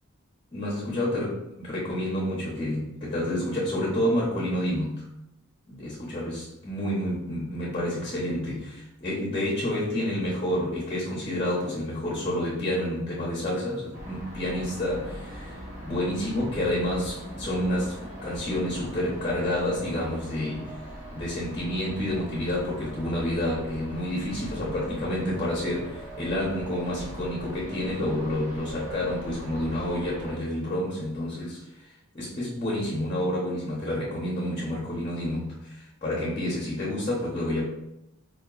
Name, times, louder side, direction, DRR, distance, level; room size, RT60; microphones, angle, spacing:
voice 1, 0.5-5.1 5.7-18.0 18.2-20.8 21.1-37.7, left 1 dB, 25° left, -6 dB, 0.7 m, -29 dB
sound 1, 13.9-30.3, equal, 90° right, 1.2 m, -41 dB
4.2 x 2.8 x 2.3 m, 0.87 s
head